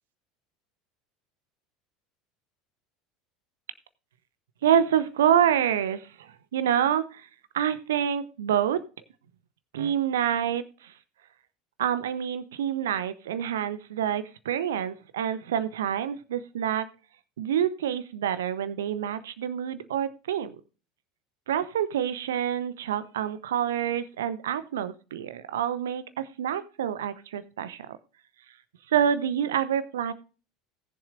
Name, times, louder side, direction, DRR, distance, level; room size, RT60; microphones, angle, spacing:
voice 1, 4.6-7.3 7.5-8.8 9.7-10.9 11.8-16.9 17.4-20.6 21.5-27.9 28.9-30.1, right 9 dB, 65° right, 14 dB, 0.8 m, -27 dB
19.0 x 7.2 x 2.5 m, 0.34 s
figure-of-eight pair, 70°, 0 cm